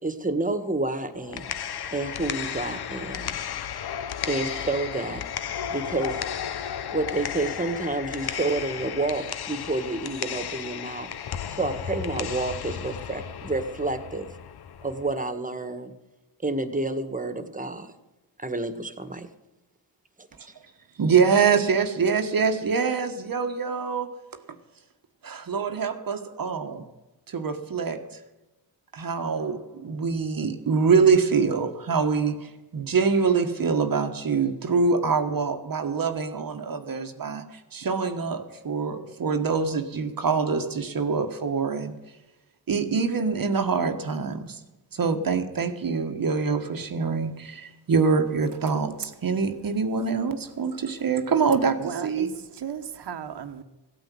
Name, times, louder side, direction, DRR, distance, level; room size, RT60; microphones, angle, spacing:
voice 1, 0.0-1.5 1.9-3.4 4.3-5.2 5.7-6.2 6.9-11.1 11.5-14.3 14.8-15.9 16.4-17.9 18.4-19.3, right 2 dB, 20° right, 10 dB, 1.8 m, -29 dB
sound 1, 1.1-15.1, left 9 dB, 60° left, 0.9 m, -34 dB
voice 2, 21.0-24.2 25.2-26.9 27.3-28.2 28.9-41.9 42.7-44.6 44.9-52.3, right 5 dB, 50° right, 7 dB, 1.4 m, -25 dB
voice 3, 51.8-53.6, right 7 dB, 65° right, 9 dB, 1.5 m, -35 dB
16.0 x 9.2 x 7.7 m, 1.0 s
cardioid pair, 85°, 44 cm